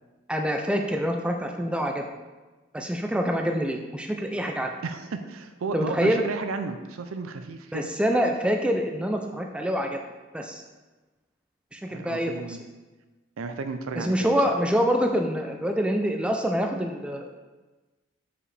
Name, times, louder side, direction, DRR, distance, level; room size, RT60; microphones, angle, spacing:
voice 1, 0.3-2.0 2.7-4.7 5.7-6.2 7.7-10.0 10.3-10.6 11.7-12.6 14.0-17.3, equal, 5° right, 3 dB, 0.3 m, -26 dB
voice 2, 4.8-7.9 11.9-12.6 13.4-14.3, right 4 dB, 85° right, 7 dB, 0.5 m, -33 dB
7.3 x 4.9 x 3.3 m, 1.2 s
head